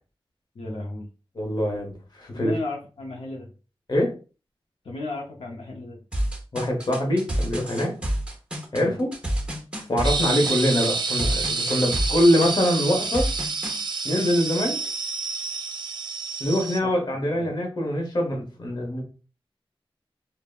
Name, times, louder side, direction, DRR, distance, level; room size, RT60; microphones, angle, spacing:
voice 1, 0.6-1.1 2.3-3.5 4.8-6.0 8.8-9.0 11.6-11.7 17.3-17.5, left 2 dB, 75° left, -2 dB, 0.5 m, -34 dB
voice 2, 1.3-2.6 3.9-4.1 6.5-7.9 8.7-9.1 9.9-13.3 14.0-14.8 16.4-19.0, equal, 45° left, 0 dB, 0.9 m, -24 dB
sound 1, 6.1-13.8, right 1 dB, 10° right, 0.8 m, -28 dB
sound 2, 10.0-16.8, right 4 dB, 50° right, 0.3 m, -28 dB
3.4 x 2.0 x 2.3 m, 0.34 s
wide cardioid pair, 95°, 10 cm